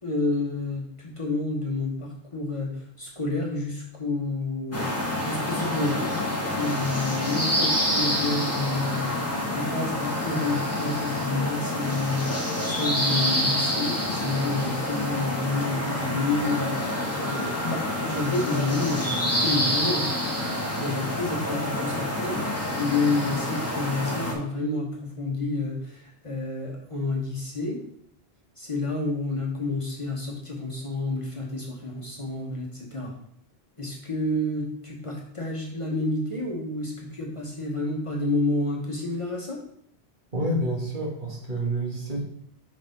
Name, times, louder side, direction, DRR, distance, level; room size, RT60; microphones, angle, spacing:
voice 1, 0.0-9.2 9.5-20.1 20.8-27.8 28.6-33.1 33.8-39.6, left 2 dB, 30° left, -2 dB, 1.1 m, -29 dB
sound 1, 4.7-24.3, left 1 dB, 15° left, 1.0 m, -27 dB
voice 2, 40.3-42.3, right 1 dB, 50° right, -2 dB, 1.7 m, -28 dB
5.3 x 4.0 x 5.2 m, 0.69 s
omnidirectional pair, 1.0 m